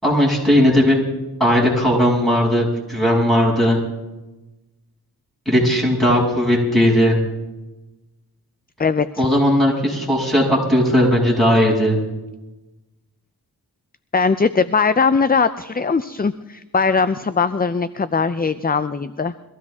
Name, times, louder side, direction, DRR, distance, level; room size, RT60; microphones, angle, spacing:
voice 1, 0.0-1.0 1.4-3.8 5.5-7.2 9.2-12.0, equal, ahead, -4 dB, 7.1 m, -17 dB
voice 2, 8.8-9.3 14.1-19.3, left 5 dB, 25° left, 12 dB, 0.5 m, -20 dB
23.5 x 15.5 x 3.6 m, 1.1 s
wide cardioid pair, 60°, 40 cm